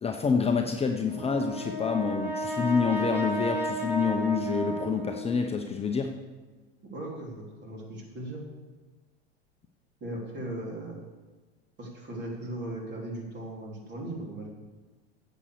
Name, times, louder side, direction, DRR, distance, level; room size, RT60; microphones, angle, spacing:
voice 1, 0.0-6.1, left 5 dB, 20° left, 3 dB, 0.8 m, -27 dB
Brass instrument, 1.1-5.5, right 1 dB, 10° right, 2.9 m, -33 dB
voice 2, 6.9-8.4 10.0-11.0 11.8-14.5, right 1 dB, 35° right, -1 dB, 3.6 m, -38 dB
9.7 x 7.9 x 6.7 m, 1.3 s
hypercardioid pair, 95°, 32 cm